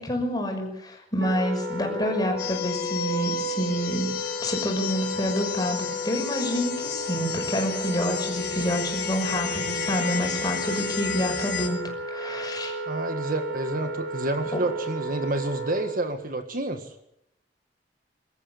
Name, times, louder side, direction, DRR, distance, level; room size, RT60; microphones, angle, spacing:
voice 1, 0.0-4.1 4.4-12.7 14.5-14.6, equal, 25° left, 2 dB, 5.8 m, -28 dB
Wind instrument woodwind instrument, 1.2-16.1, equal, 75° right, 7.4 m, -33 dB
sound 1, 2.4-11.7, left 8 dB, 65° left, 4.3 m, -33 dB
voice 2, 12.9-16.9, right 2 dB, 50° right, 7 dB, 1.7 m, -29 dB
23.5 x 14.0 x 8.8 m, 0.78 s
head